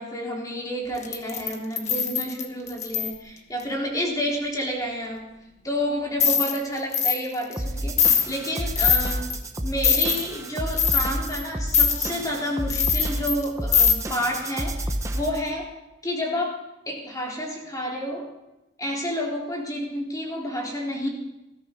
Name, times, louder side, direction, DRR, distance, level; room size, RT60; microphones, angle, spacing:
voice 1, 0.0-5.3 5.6-9.2 9.6-15.7 16.0-16.6 16.9-18.3 18.8-21.1, equal, 20° left, -2 dB, 3.8 m, -30 dB
sound 1, 1.0-3.1 6.2-6.6 6.9-7.2 7.5-7.6 8.0-8.3 8.8-9.4 9.8-10.3 10.7-11.4 11.7-12.1 12.7-13.4 13.7-13.9, left 7 dB, 40° left, 1.4 m, -21 dB
sound 2, 7.6-15.5, right 1 dB, 15° right, 1.1 m, -30 dB
20.0 x 13.5 x 3.9 m, 0.95 s
head